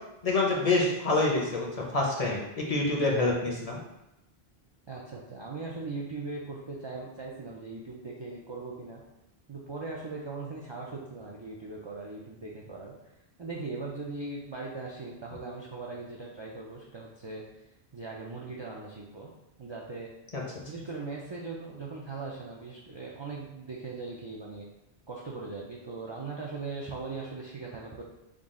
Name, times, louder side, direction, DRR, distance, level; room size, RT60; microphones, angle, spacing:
voice 1, 0.2-1.7 1.9-3.8 20.3-20.4, left 2 dB, 45° left, -2 dB, 0.6 m, -26 dB
voice 2, 4.9-9.0 9.5-12.9 13.4-17.4 17.9-19.3 19.6-20.1 20.7-24.7 25.1-28.0, right 3 dB, 45° right, -3 dB, 0.3 m, -39 dB
3.7 x 2.3 x 3.6 m, 0.91 s
omnidirectional pair, 1.0 m